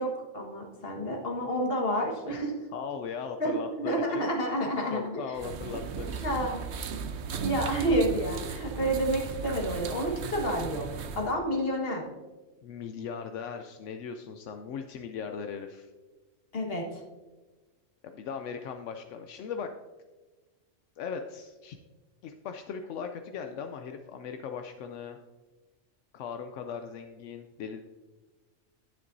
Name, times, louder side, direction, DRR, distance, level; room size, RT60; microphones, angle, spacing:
voice 1, 0.0-2.5 3.4-5.2 6.2-6.6 7.4-10.9 11.1-12.0 16.5-17.0, right 1 dB, 55° left, 0 dB, 1.8 m, -29 dB
voice 2, 2.7-4.3 4.9-6.3 12.6-15.9 18.0-19.7 21.0-21.8 22.2-25.2 26.1-27.8, left 6 dB, 85° left, 6 dB, 0.9 m, -38 dB
sound 1, 5.4-11.3, right 5 dB, 70° right, 0.9 m, -36 dB
10.5 x 9.6 x 2.6 m, 1.2 s
omnidirectional pair, 1.2 m